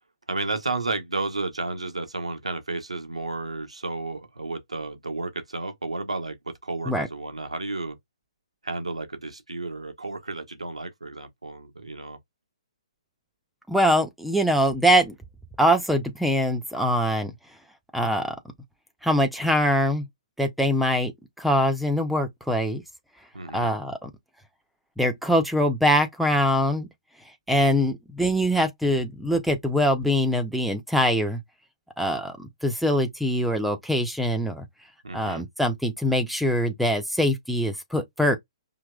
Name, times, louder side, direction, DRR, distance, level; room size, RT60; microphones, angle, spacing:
voice 1, 0.3-8.0 8.6-12.2 23.3-23.8 35.0-35.5, right 3 dB, 75° right, 0.9 m, -32 dB
voice 2, 13.7-15.1 15.6-17.3 17.9-18.3 19.0-20.1 20.4-21.1 21.4-22.8 23.5-24.1 25.0-26.9 27.5-31.4 32.0-34.6 35.1-38.4, equal, ahead, 0.6 m, -23 dB
4.9 x 2.9 x 2.2 m
figure-of-eight pair, 125°, 3 cm